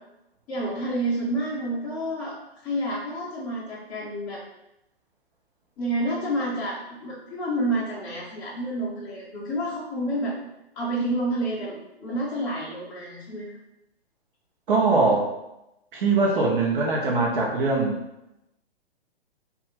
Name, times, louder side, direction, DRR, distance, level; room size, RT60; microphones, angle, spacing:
voice 1, 0.5-2.4 2.6-4.4 5.8-10.4 10.8-13.5, right 1 dB, 15° left, -9 dB, 0.5 m, -29 dB
voice 2, 14.7-15.3 15.9-18.0, right 3 dB, 55° right, -2 dB, 0.8 m, -22 dB
2.6 x 2.4 x 3.1 m, 0.90 s
figure-of-eight pair, 130°, 31 cm